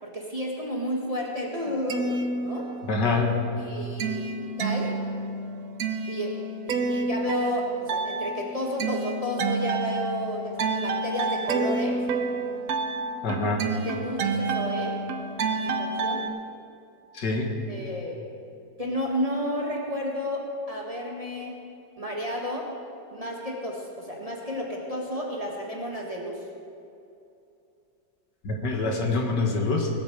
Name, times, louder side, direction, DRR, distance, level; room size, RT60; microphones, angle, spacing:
voice 1, 0.0-2.7 3.6-4.9 6.1-6.3 6.7-12.0 13.3-13.4 13.8-14.9 15.5-16.2 17.7-18.2 18.8-20.4 20.7-21.5 22.0-22.7 23.1-26.4, equal, 20° right, -2 dB, 1.7 m, -32 dB
sound 1, 1.7-3.1 3.4-16.3, right 3 dB, 60° right, 1.2 m, -29 dB
voice 2, 2.9-3.4 13.2-13.6 17.1-17.5 28.4-29.9, left 3 dB, 75° left, 1 dB, 2.3 m, -25 dB
19.5 x 8.1 x 6.6 m, 2.7 s
omnidirectional pair, 1.9 m